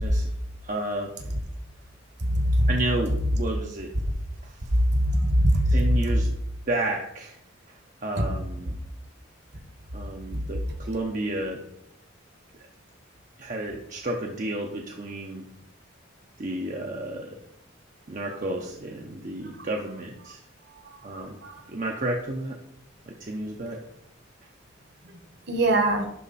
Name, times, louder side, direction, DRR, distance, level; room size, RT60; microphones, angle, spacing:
voice 1, 0.0-0.3 0.6-1.3 2.7-3.9 4.4-4.7 5.7-6.3 6.7-7.4 7.7-8.8 9.9-11.6 13.4-15.5 16.4-17.4 18.1-20.4 21.0-21.4 21.7-22.6 23.1-23.8, right 1 dB, 40° right, 0 dB, 0.7 m, -31 dB
voice 2, 2.3-2.7 5.1-5.7 8.1-8.4 20.7-21.0 21.4-21.6 25.5-26.1, right 1 dB, 55° right, 5 dB, 1.4 m, -22 dB
11.0 x 4.2 x 4.1 m, 0.77 s
head